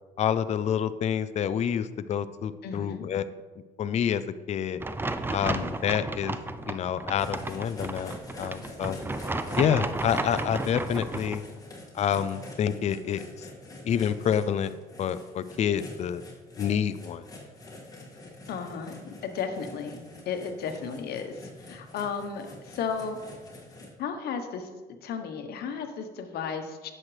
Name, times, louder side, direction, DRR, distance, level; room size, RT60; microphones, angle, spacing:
voice 1, 0.2-3.2 3.8-4.2 4.5-4.8 5.3-6.4 6.7-9.0 9.6-11.4 11.9-13.5 13.8-14.7 15.0-16.2 16.6-17.2, left 8 dB, 40° left, 13 dB, 0.5 m, -28 dB
voice 2, 2.6-3.0 18.5-23.2 24.0-24.7 25.0-26.9, left 6 dB, 70° left, 6 dB, 1.2 m, -34 dB
sound 1, 4.8-11.4, right 2 dB, 15° right, 0.5 m, -33 dB
sound 2, 7.2-23.9, left 1 dB, 20° left, 2.1 m, -46 dB
10.5 x 7.4 x 3.3 m, 1.3 s
cardioid pair, 110°, 17 cm